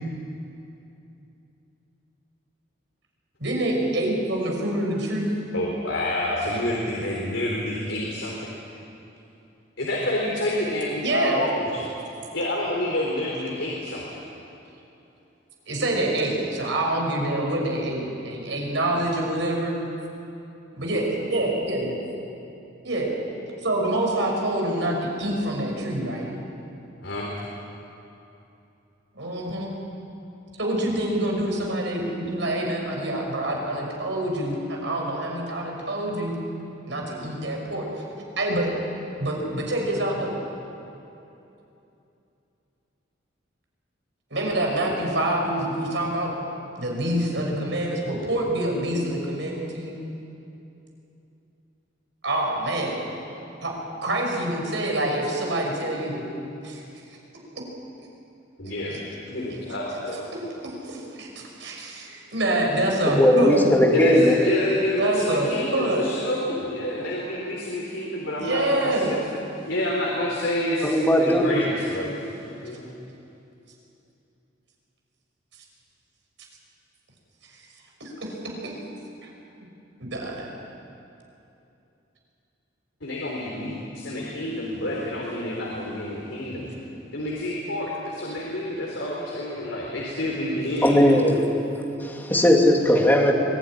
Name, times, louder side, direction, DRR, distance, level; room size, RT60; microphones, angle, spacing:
voice 1, 3.4-5.3 11.0-11.4 15.7-19.8 20.7-22.0 22.8-23.1 23.6-26.3 29.1-29.7 30.5-36.3 36.9-38.0 38.4-38.7 39.2-40.4 44.3-46.3 46.8-50.0 52.2-53.0 53.6-53.8 54.0-56.3 56.6-56.8 58.9-59.0 60.3-63.7 65.0-66.1 68.4-69.1 77.5-77.6 78.0-78.8 79.2-79.3 80.0-80.5, right 1 dB, 70° right, 0 dB, 6.0 m, -26 dB
voice 2, 5.5-8.5 9.8-11.9 12.3-14.0 27.0-27.3 58.6-60.3 63.9-69.2 69.6-72.9 83.0-86.7 87.1-91.1, left 1 dB, 75° left, -3 dB, 4.0 m, -28 dB
voice 3, 63.0-64.4 70.8-71.5 90.8-91.5 92.0-93.3, left 1 dB, 10° left, 0 dB, 2.7 m, -18 dB
24.5 x 18.5 x 10.0 m, 2.9 s
head